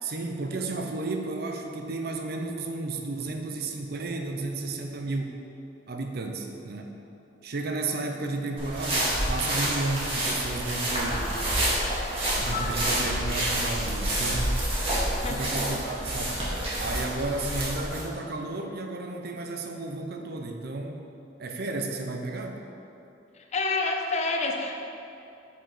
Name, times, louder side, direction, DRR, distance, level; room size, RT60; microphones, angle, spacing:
voice 1, 0.0-5.4 5.9-6.9 7.4-11.3 12.4-14.6 15.3-16.4 16.8-21.0 21.4-22.6, right 2 dB, 60° right, 3 dB, 0.6 m, -33 dB
sound 1, 8.6-18.0, right 1 dB, 30° right, 1.7 m, -28 dB
voice 2, 12.4-12.8 15.1-15.5 23.3-24.8, left 3 dB, 40° left, 2 dB, 0.6 m, -29 dB
5.4 x 5.0 x 5.6 m, 2.7 s
head